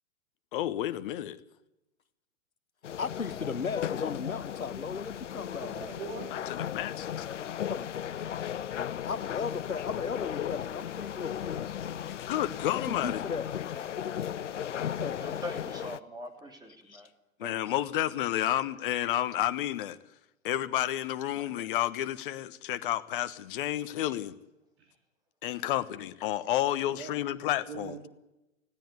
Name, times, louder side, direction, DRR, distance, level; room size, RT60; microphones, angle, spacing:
voice 1, 0.5-1.4 6.3-7.3 12.2-13.2 17.4-20.0 20.4-24.3 25.4-28.0, left 13 dB, 40° left, 1.2 m, -31 dB
sound 1, 2.8-16.0, left 9 dB, 60° left, 0.8 m, -36 dB
voice 2, 2.9-5.7 7.7-7.9 9.0-11.7 12.9-13.5 15.0-15.2 16.9-17.0, left 5 dB, 80° left, 1.1 m, -36 dB
voice 3, 5.6-6.3 24.8-24.9 26.7-27.1 27.7-28.1, right 5 dB, 50° right, 3.4 m, -41 dB
voice 4, 15.2-17.1 17.4-17.7 21.5-21.7, left 1 dB, 10° right, 3.0 m, -44 dB
19.5 x 16.0 x 9.4 m
figure-of-eight pair, 110°, 41 cm